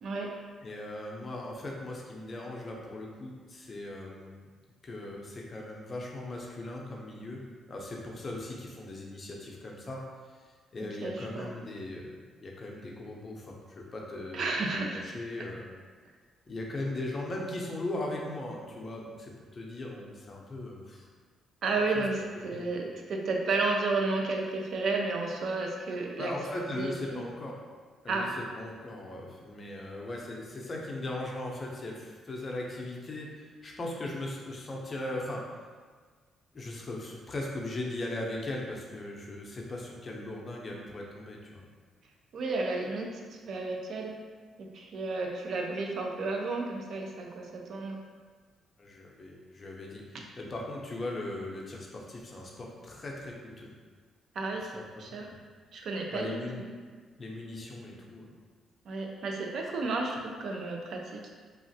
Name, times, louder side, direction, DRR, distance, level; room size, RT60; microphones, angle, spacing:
voice 1, 0.0-0.3 10.8-11.5 14.3-15.0 21.6-26.3 26.8-27.2 28.1-28.3 42.3-44.1 44.6-48.0 54.3-54.7 55.0-55.3 55.7-56.7 58.8-61.3, right 3 dB, 65° right, 1 dB, 0.4 m, -32 dB
voice 2, 0.6-4.4 4.8-7.4 7.7-10.0 10.7-12.1 12.4-14.5 15.0-15.7 16.5-21.1 21.9-22.0 22.5-22.7 26.2-27.6 28.0-35.5 36.5-41.6 48.8-53.7 54.7-54.8 55.3-55.4 56.1-56.6 57.2-58.3, left 1 dB, 35° left, -1 dB, 0.6 m, -38 dB
3.1 x 2.4 x 2.7 m, 1.5 s
cardioid pair, 90°, 0 cm